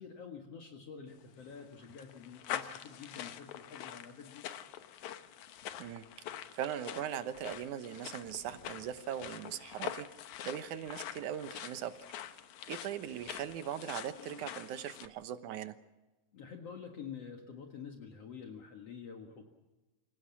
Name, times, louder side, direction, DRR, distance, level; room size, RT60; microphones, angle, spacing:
voice 1, 0.0-4.4 16.3-19.4, left 6 dB, 60° left, 3 dB, 2.7 m, -48 dB
sound 1, 1.2-15.1, left 11 dB, 75° left, 2.4 m, -45 dB
voice 2, 5.8-10.1 10.4-11.9 12.7-15.8, right 10 dB, 85° right, 11 dB, 2.5 m, -40 dB
27.0 x 17.5 x 7.4 m, 1.1 s
omnidirectional pair, 3.4 m